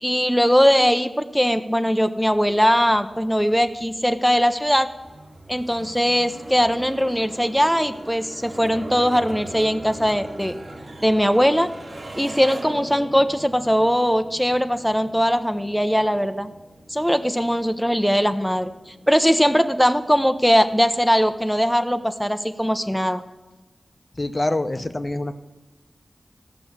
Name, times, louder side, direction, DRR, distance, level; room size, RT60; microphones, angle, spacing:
voice 1, 0.0-4.9 5.5-10.6 11.0-11.7 12.2-16.5 16.9-23.2, equal, ahead, 7 dB, 0.7 m, -20 dB
sound 1, 2.3-21.5, right 1 dB, 60° right, 1.7 m, -41 dB
voice 2, 24.1-25.3, left 2 dB, 35° left, 8 dB, 0.7 m, -25 dB
14.5 x 6.1 x 7.9 m, 1.2 s
wide cardioid pair, 60°, 0 cm